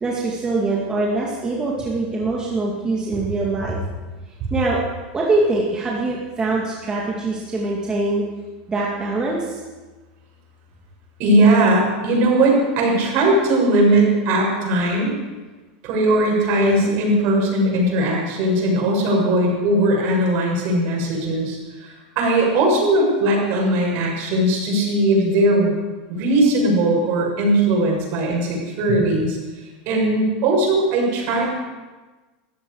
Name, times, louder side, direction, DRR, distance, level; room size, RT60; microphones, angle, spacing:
voice 1, 0.0-3.8 4.5-4.8 5.1-8.2 8.7-9.6, right 2 dB, 15° right, -3 dB, 2.3 m, -23 dB
voice 2, 11.2-15.2 15.8-25.8 26.1-29.4 29.9-31.5, right 1 dB, 50° right, -1 dB, 6.8 m, -19 dB
18.5 x 14.0 x 4.9 m, 1.3 s
supercardioid pair, 135°, 5 cm